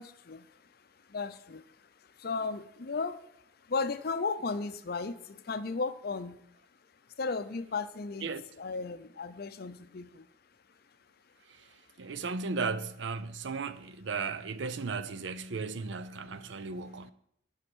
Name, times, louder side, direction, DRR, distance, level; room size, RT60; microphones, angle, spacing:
voice 1, 0.0-6.4 7.2-8.3 8.6-10.3 12.0-12.1, left 4 dB, 55° left, 0.6 m, -36 dB
voice 2, 12.0-17.1, right 4 dB, 80° right, 0.5 m, -35 dB
9.7 x 5.3 x 6.2 m
head